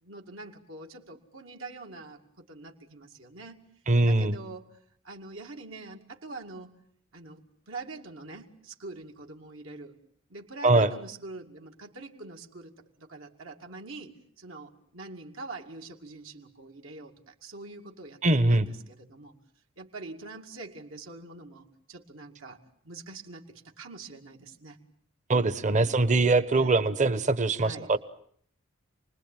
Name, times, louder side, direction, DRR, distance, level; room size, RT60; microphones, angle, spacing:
voice 1, 0.0-3.6 4.0-4.8 5.0-6.7 7.1-10.0 10.3-19.3 19.8-22.6 22.8-24.8 26.5-26.8 27.6-27.9, right 3 dB, 70° right, 2 dB, 2.4 m, -44 dB
voice 2, 3.9-4.3 10.6-10.9 18.2-18.7 25.3-28.0, right 2 dB, 35° right, 13 dB, 1.2 m, -22 dB
29.0 x 20.5 x 9.1 m, 0.64 s
head